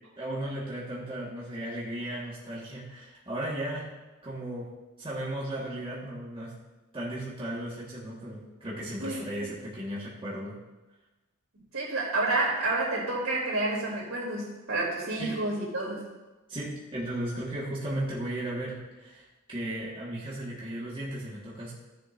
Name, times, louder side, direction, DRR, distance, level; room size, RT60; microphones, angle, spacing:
voice 1, 0.2-3.9 4.2-4.7 5.0-6.6 6.9-10.5 15.2-15.4 16.5-21.7, right 1 dB, 25° right, -7 dB, 2.0 m, -35 dB
voice 2, 11.7-16.0, right 2 dB, 75° right, -4 dB, 3.8 m, -29 dB
16.5 x 6.9 x 2.8 m, 1.1 s
head